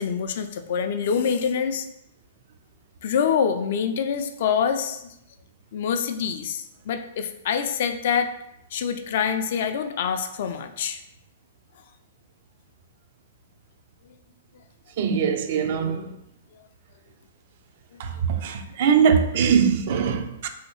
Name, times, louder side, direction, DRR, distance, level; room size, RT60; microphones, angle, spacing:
voice 1, 0.0-1.9 3.0-5.1 5.7-8.3 8.7-11.0 17.9-18.0, left 7 dB, 55° left, 0.3 m, -25 dB
voice 2, 15.0-16.1 18.0-20.5, right 7 dB, 55° right, 0.3 m, -22 dB
2.7 x 2.6 x 2.9 m
figure-of-eight pair, 115°, 0 cm